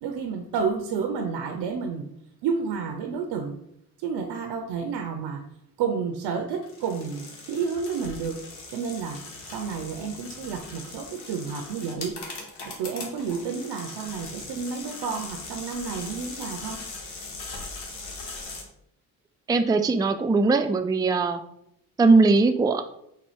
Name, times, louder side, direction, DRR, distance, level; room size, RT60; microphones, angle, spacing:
voice 1, 0.0-2.1 2.4-3.6 4.0-5.4 5.8-8.4 8.7-12.2 12.6-16.8, right 6 dB, 85° right, 5 dB, 0.6 m, -30 dB
sound 1, 6.6-18.6, left 3 dB, 75° left, 1.2 m, -40 dB
voice 2, 19.5-21.4 22.0-22.8, right 3 dB, 10° right, 7 dB, 0.3 m, -20 dB
4.1 x 2.3 x 4.6 m, 0.75 s
supercardioid pair, 55°, 41 cm